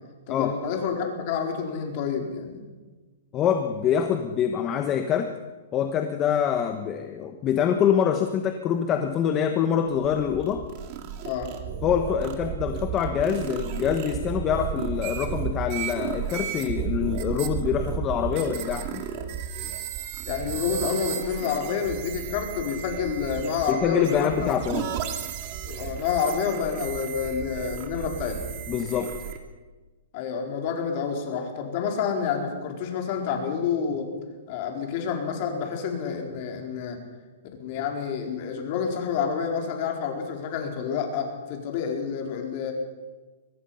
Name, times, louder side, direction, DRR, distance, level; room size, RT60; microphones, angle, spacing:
voice 1, 0.3-2.7 11.2-11.5 20.3-24.6 25.6-28.4 30.1-34.1 34.5-37.0 37.6-42.7, left 6 dB, 40° left, 3 dB, 4.2 m, -28 dB
voice 2, 3.3-5.3 5.7-10.6 11.8-19.1 23.7-24.9 28.7-29.1, left 8 dB, 20° left, 6 dB, 1.2 m, -25 dB
sound 1, 9.9-29.4, right 8 dB, 35° right, 2.3 m, -33 dB
24.0 x 19.5 x 5.7 m, 1.3 s
hypercardioid pair, 165°, 0 cm